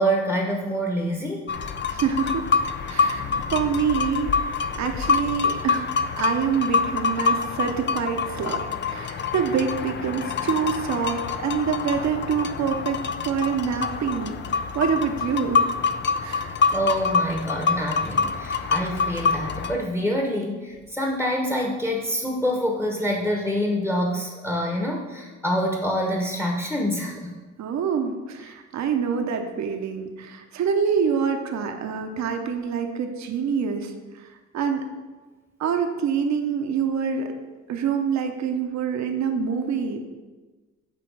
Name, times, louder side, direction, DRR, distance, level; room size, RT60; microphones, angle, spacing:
voice 1, 0.0-1.4 16.7-27.3, equal, 5° left, 0 dB, 1.1 m, -26 dB
sound 1, 1.5-19.8, left 5 dB, 40° left, 0.5 m, -26 dB
voice 2, 1.9-2.5 2.8-15.6 16.2-16.5 27.6-34.3 34.5-34.8 35.6-37.4 37.7-40.0, right 6 dB, 65° right, 5 dB, 0.9 m, -26 dB
9.0 x 3.1 x 6.2 m, 1.3 s
cardioid pair, 90°, 30 cm